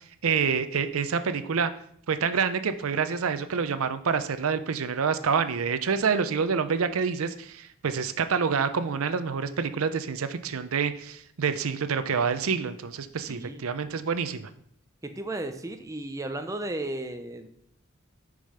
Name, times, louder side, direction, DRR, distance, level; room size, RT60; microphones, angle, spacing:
voice 1, 0.0-1.7 2.1-14.5, right 6 dB, 80° right, 12 dB, 0.5 m, -27 dB
voice 2, 13.3-13.6 15.0-17.5, right 2 dB, 15° right, 7 dB, 0.6 m, -34 dB
6.9 x 5.0 x 5.5 m, 0.66 s
head